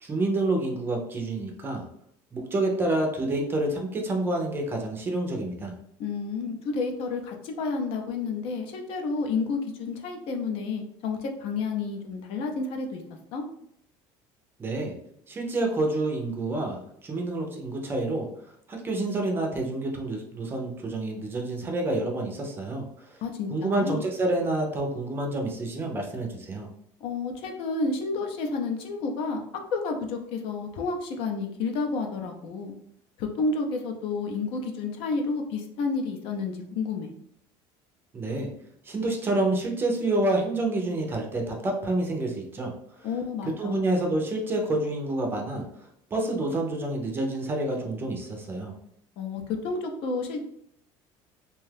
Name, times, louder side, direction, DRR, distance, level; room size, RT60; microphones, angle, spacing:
voice 1, 0.0-1.8 2.3-5.7 14.6-14.9 15.3-18.3 18.7-23.1 23.5-26.7 38.1-38.5 38.8-42.7 43.4-45.6 46.1-48.7, right 2 dB, 20° right, 1 dB, 0.5 m, -28 dB
voice 2, 6.0-13.0 13.3-13.4 23.2-24.0 27.0-29.4 29.7-32.7 33.2-37.1 43.0-43.8 49.2-50.4, left 4 dB, 60° left, 3 dB, 0.5 m, -30 dB
2.7 x 2.3 x 3.3 m, 0.71 s
cardioid pair, 155°, 11 cm